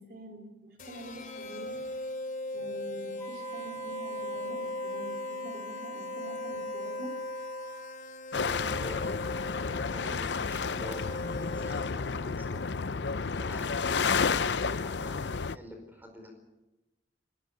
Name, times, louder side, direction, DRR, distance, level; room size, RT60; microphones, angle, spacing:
voice 1, 0.0-1.8 2.5-7.1, equal, 55° right, 3 dB, 3.2 m, -46 dB
sound 1, 0.8-12.2, left 1 dB, 45° left, 3.1 m, -39 dB
Wind instrument woodwind instrument, 3.2-8.0, left 1 dB, 15° left, 5.8 m, -43 dB
sound 2, 8.3-15.6, left 5 dB, 80° left, 0.7 m, -31 dB
voice 2, 8.4-9.2 9.9-12.6 13.4-16.3, left 1 dB, 10° right, 5 dB, 4.8 m, -47 dB
20.5 x 19.0 x 8.7 m, 1.0 s
head